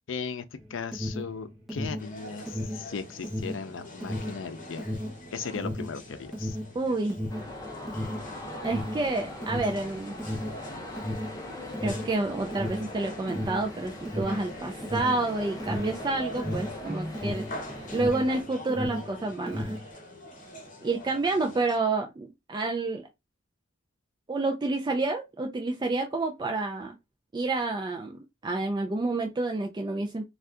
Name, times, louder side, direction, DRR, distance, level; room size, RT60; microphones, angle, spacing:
voice 1, 0.1-4.9 5.3-6.6, left 5 dB, 85° left, 0.5 m, -37 dB
Alarm, 0.6-18.4 18.6-19.9, equal, ahead, 0.9 m, -34 dB
sound 1, 2.0-21.8, equal, 45° left, 1.0 m, -45 dB
voice 2, 6.8-7.2 8.6-10.2 11.8-17.5 17.9-19.8 20.8-23.1 24.3-27.0 27.3-30.2, right 2 dB, 25° right, 0.3 m, -29 dB
sound 2, 7.3-18.4, left 1 dB, 20° left, 0.6 m, -41 dB
2.6 x 2.3 x 3.4 m
head